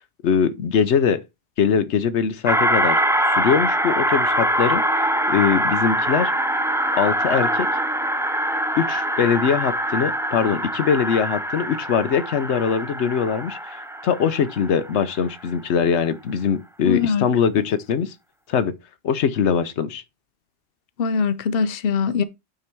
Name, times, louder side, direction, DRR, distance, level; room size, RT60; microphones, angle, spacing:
voice 1, 0.2-1.2 1.6-3.0 3.3-6.3 7.0-7.7 8.8-13.8 14.0-18.1 18.5-18.7 19.0-20.0, left 7 dB, 90° left, 1.0 m, -22 dB
sound 1, 2.5-15.2, right 1 dB, 5° right, 0.3 m, -23 dB
voice 2, 16.9-17.3 21.0-22.2, left 6 dB, 60° left, 0.9 m, -22 dB
9.0 x 3.9 x 4.4 m
omnidirectional pair, 1.1 m